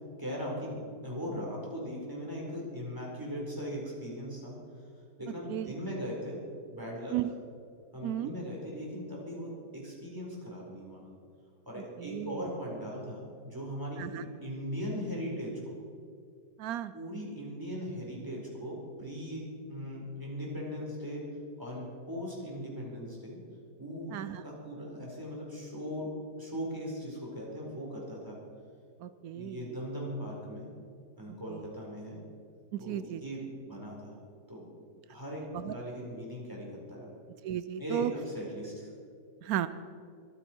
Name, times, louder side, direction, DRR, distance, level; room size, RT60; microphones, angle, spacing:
voice 1, 0.2-4.6 5.2-6.4 6.7-7.1 7.9-11.0 11.7-15.8 16.9-21.2 21.6-23.4 23.8-26.1 26.4-28.4 29.3-30.7 31.2-32.2 32.8-34.1 34.5-34.6 35.1-37.1 37.8-38.9, equal, 10° right, -4 dB, 4.4 m, -39 dB
voice 2, 12.0-12.4 14.0-14.2 16.6-16.9 24.1-24.4 29.0-29.7 31.5-31.7 32.7-33.2 35.5-35.7 37.4-38.1 39.4-39.7, right 12 dB, 85° right, 13 dB, 0.8 m, -34 dB
24.5 x 9.8 x 4.6 m, 2.3 s
omnidirectional pair, 2.1 m